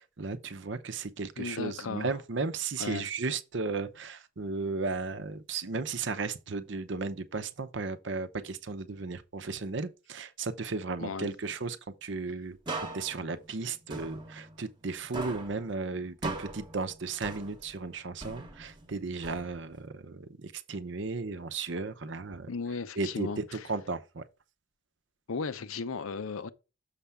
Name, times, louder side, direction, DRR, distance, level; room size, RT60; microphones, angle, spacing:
voice 1, 0.0-12.6 12.9-22.5 23.0-24.2, right 4 dB, 60° right, 0.7 m, -35 dB
voice 2, 1.4-2.1 2.8-3.1 11.0-11.3 22.5-23.7 25.3-26.5, left 4 dB, 80° left, 0.6 m, -36 dB
sound 1, 12.7-14.9 15.1-17.8 18.2-19.9, right 2 dB, 20° right, 1.0 m, -40 dB
6.7 x 5.6 x 3.5 m
head